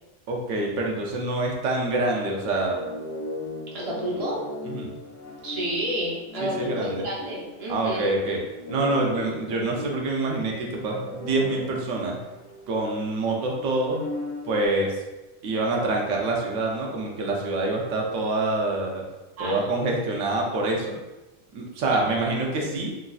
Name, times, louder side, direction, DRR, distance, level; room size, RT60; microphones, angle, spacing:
voice 1, 0.3-2.7 4.7-4.9 6.4-7.1 7.7-8.4 8.7-12.2 12.7-14.0 14.4-15.0 15.4-19.0 19.4-21.0 21.5-22.9, right 2 dB, 80° right, -1 dB, 0.9 m, -26 dB
sound 1, 2.6-8.1 8.5-13.1 13.5-14.7, left 2 dB, 80° left, 0.9 m, -37 dB
voice 2, 3.7-4.4 5.4-8.1 19.4-19.7 21.9-22.1, right 1 dB, 35° right, -5 dB, 0.6 m, -30 dB
3.1 x 2.5 x 2.3 m, 1.1 s
omnidirectional pair, 1.3 m